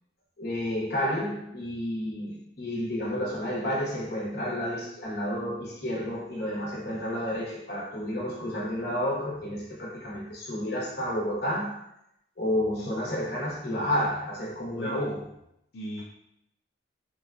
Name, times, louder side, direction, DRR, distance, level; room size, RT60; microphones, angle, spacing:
voice 1, 0.4-11.8 12.4-15.2, equal, 60° left, -4 dB, 1.0 m, -31 dB
voice 2, 14.8-15.1 15.7-16.0, equal, 90° left, -3 dB, 0.4 m, -38 dB
3.7 x 2.2 x 2.4 m, 0.78 s
head